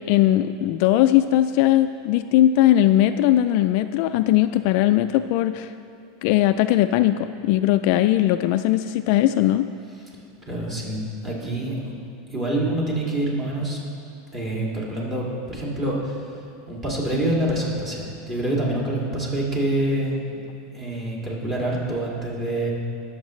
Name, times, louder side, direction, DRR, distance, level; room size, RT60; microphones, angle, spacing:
voice 1, 0.1-5.7 6.2-9.7, left 13 dB, 50° left, 10 dB, 0.3 m, -19 dB
voice 2, 9.8-10.2 10.4-11.9 12.3-13.8 14.3-20.4 20.7-22.7, right 1 dB, 20° right, -4 dB, 2.3 m, -26 dB
20.5 x 7.3 x 3.2 m, 2.5 s
supercardioid pair, 165°, 0 cm